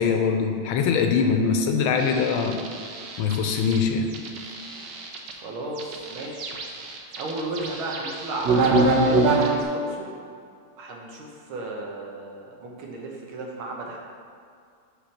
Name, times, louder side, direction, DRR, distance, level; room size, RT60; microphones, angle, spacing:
voice 1, 0.0-2.6 3.2-4.1, left 5 dB, 85° left, 5 dB, 1.5 m, -22 dB
sound 1, 2.0-3.8 4.1-5.3 5.8-9.6, right 2 dB, 65° right, 1.4 m, -24 dB
voice 2, 5.3-6.6 7.1-10.1 10.8-14.0, right 2 dB, 85° right, -1 dB, 1.9 m, -34 dB
5.9 x 5.0 x 6.3 m, 2.3 s
omnidirectional pair, 2.2 m